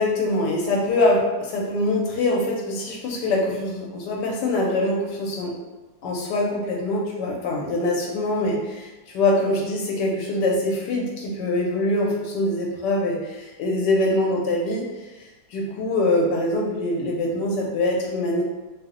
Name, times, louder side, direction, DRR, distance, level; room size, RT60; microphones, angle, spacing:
voice 1, 0.0-5.5 6.0-8.9 9.1-14.8 15.5-18.4, left 2 dB, 75° left, -2 dB, 1.1 m, -23 dB
2.9 x 2.0 x 3.6 m, 1.2 s
omnidirectional pair, 1.9 m